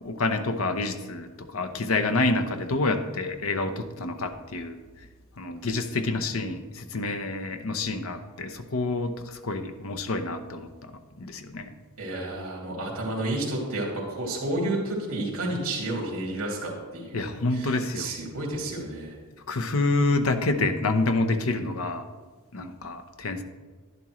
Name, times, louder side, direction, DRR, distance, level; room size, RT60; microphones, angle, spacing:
voice 1, 0.0-4.8 5.4-10.9 11.2-11.7 17.1-18.1 19.5-22.0 22.5-23.4, left 2 dB, 65° left, 8 dB, 0.8 m, -28 dB
voice 2, 12.0-19.2, right 1 dB, 75° right, -3 dB, 2.7 m, -31 dB
11.5 x 11.0 x 3.1 m, 1.4 s
head